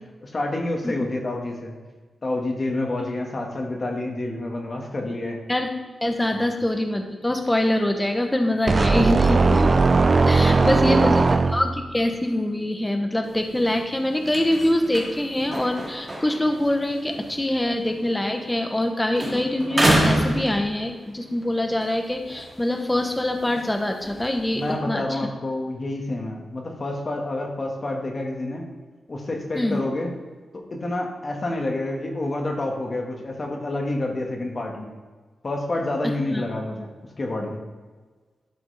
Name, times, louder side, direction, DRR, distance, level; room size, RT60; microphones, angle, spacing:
voice 1, 0.2-1.7 2.2-5.4 6.3-6.5 10.4-11.3 24.5-28.7 29.1-30.1 30.5-34.9 35.4-36.9 37.2-37.6, left 2 dB, 40° left, 1 dB, 1.7 m, -28 dB
voice 2, 6.0-9.8 10.3-11.2 11.5-25.2 29.5-29.8 36.3-36.4, left 1 dB, 15° left, 4 dB, 1.0 m, -24 dB
sound 1, 8.7-11.9, right 3 dB, 40° right, 0.4 m, -18 dB
sound 2, 13.2-18.9 19.1-21.2 21.6-24.7, right 1 dB, 20° right, 2.7 m, -29 dB
12.0 x 5.9 x 3.4 m, 1.4 s
wide cardioid pair, 100°, 0 cm